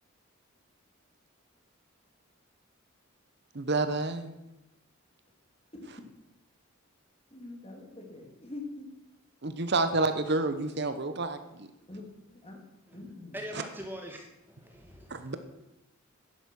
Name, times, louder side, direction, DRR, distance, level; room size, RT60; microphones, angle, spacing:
voice 1, 3.5-4.3 9.4-11.7 15.1-15.4, right 3 dB, 50° right, 9 dB, 1.0 m, -29 dB
voice 2, 7.3-8.9 11.9-12.0 12.3-12.6 12.9-13.4, left 2 dB, 25° left, 1 dB, 2.8 m, -44 dB
voice 3, 13.3-15.3, equal, 10° right, 2 dB, 1.3 m, -43 dB
11.0 x 10.5 x 6.4 m, 0.92 s
head